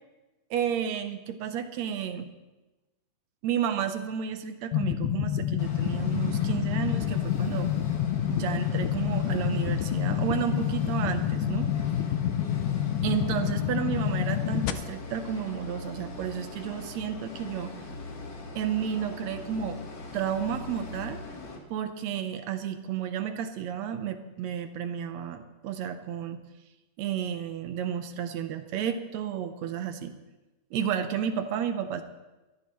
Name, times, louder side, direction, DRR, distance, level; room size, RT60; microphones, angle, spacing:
voice 1, 0.5-2.3 3.4-7.7 8.3-11.7 13.0-17.7 18.6-19.8 20.1-21.2 21.7-26.4 27.0-30.2 30.7-32.0, right 9 dB, 70° right, 8 dB, 1.8 m, -32 dB
sound 1, 4.7-14.7, left 11 dB, 85° left, 2.4 m, -28 dB
sound 2, 5.6-21.6, left 3 dB, 50° left, 1.4 m, -41 dB
22.5 x 14.0 x 3.1 m, 1.1 s
omnidirectional pair, 3.8 m